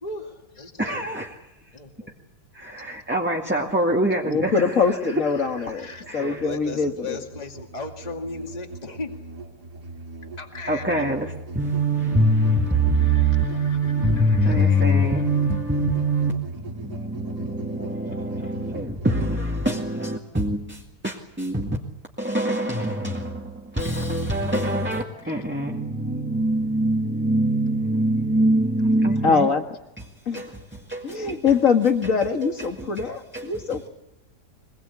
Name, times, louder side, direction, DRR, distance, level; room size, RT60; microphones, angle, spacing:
voice 1, 0.0-1.1 1.7-2.1 5.3-9.1 10.4-11.0 12.9-15.1 18.0-18.2 18.4-18.5 25.2-25.5, left 3 dB, 25° left, 3 dB, 2.3 m, -38 dB
voice 2, 0.8-1.4 2.5-6.4 10.7-21.8 22.2-29.5 30.3-31.4 31.8-32.0 32.4-33.1 33.3-33.9, right 1 dB, 5° right, 0 dB, 2.0 m, -24 dB
voice 3, 4.3-5.9 6.1-7.2 29.2-29.6 30.3-30.4 31.0-33.9, left 5 dB, 55° left, 5 dB, 2.4 m, -23 dB
Musical instrument, 5.3-19.8, right 3 dB, 85° right, 3.2 m, -39 dB
24.5 x 21.0 x 8.5 m, 0.89 s
omnidirectional pair, 1.7 m